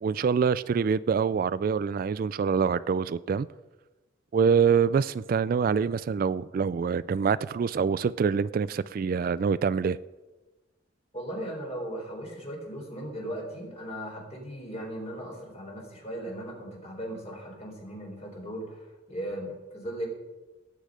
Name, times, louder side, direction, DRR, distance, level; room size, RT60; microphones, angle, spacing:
voice 1, 0.0-3.5 4.3-10.0, right 6 dB, 50° right, 0.3 m, -25 dB
voice 2, 11.1-20.1, right 1 dB, 35° left, 4.2 m, -37 dB
18.0 x 8.4 x 5.0 m
head